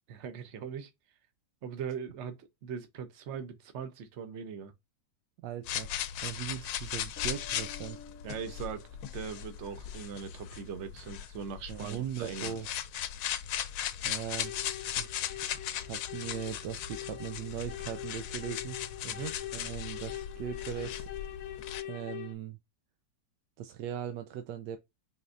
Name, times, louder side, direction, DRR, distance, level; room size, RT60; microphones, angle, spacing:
voice 1, 0.1-0.9 1.6-4.7 8.2-12.6 19.0-19.4, right 7 dB, 55° right, 0.9 m, -40 dB
voice 2, 5.4-5.9 6.2-8.0 11.7-12.7 14.0-14.5 15.0-15.4 15.8-18.8 19.5-21.1 21.8-22.6 23.6-24.8, right 10 dB, 80° right, 1.2 m, -39 dB
sound 1, 5.6-21.8, left 10 dB, 90° left, 1.3 m, -38 dB
sound 2, 7.2-9.8, left 5 dB, 5° left, 0.8 m, -52 dB
sound 3, 14.4-22.3, left 12 dB, 60° left, 1.2 m, -44 dB
5.1 x 3.3 x 2.5 m
omnidirectional pair, 1.9 m